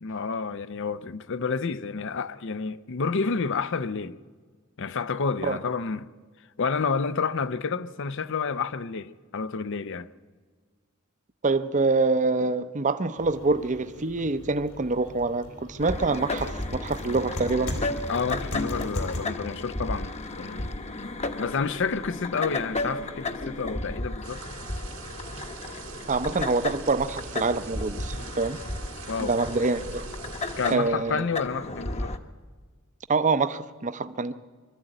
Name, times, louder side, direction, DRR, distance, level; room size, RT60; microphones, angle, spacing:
voice 1, 0.0-4.2 4.8-6.1 6.6-10.1 18.1-20.7 21.4-24.4 29.1-29.4 30.6-32.1, left 5 dB, 60° left, 0.6 m, -29 dB
voice 2, 11.4-17.7 26.1-28.6 29.2-30.1 30.7-31.3 33.1-34.3, right 3 dB, 35° right, 0.7 m, -26 dB
sound 1, 13.2-19.2, left 1 dB, 75° left, 3.8 m, -37 dB
sound 2, 15.8-32.2, left 2 dB, 30° left, 1.0 m, -34 dB
sound 3, 24.2-30.8, right 3 dB, 85° right, 3.5 m, -41 dB
24.0 x 12.5 x 8.9 m
head